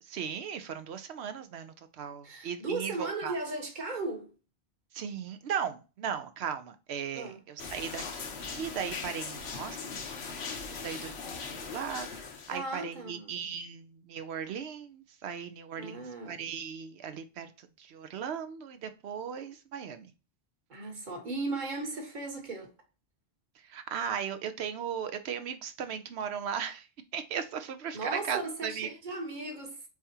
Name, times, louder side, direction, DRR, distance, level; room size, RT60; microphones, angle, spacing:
voice 1, 0.0-3.3 4.9-20.1 23.6-26.9 27.1-28.9, right 7 dB, 85° right, 0.9 m, -37 dB
voice 2, 2.2-4.3 7.1-7.4 12.5-13.5 15.8-16.4 20.7-22.7 27.9-29.8, right 2 dB, 45° right, 1.3 m, -37 dB
sound 1, 7.6-12.6, left 5 dB, 75° left, 1.1 m, -40 dB
4.8 x 3.5 x 2.7 m
omnidirectional pair, 1.1 m